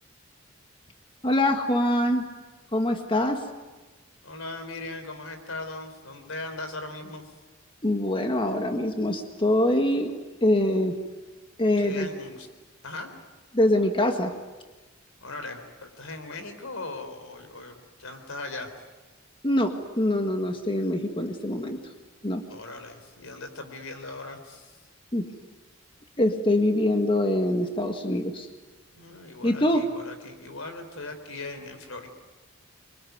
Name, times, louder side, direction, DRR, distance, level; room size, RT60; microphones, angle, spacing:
voice 1, 1.2-2.3 2.7-3.4 7.8-10.1 10.4-11.0 11.6-12.1 13.5-14.3 19.4-21.8 22.2-22.4 25.1-25.2 26.2-28.5 29.4-29.8, left 1 dB, 25° left, 5 dB, 1.7 m, -24 dB
voice 2, 4.2-7.3 11.8-12.5 12.8-13.1 15.2-18.7 22.5-24.9 28.9-32.1, left 2 dB, 85° left, 7 dB, 4.1 m, -39 dB
27.0 x 23.5 x 9.5 m, 1.2 s
head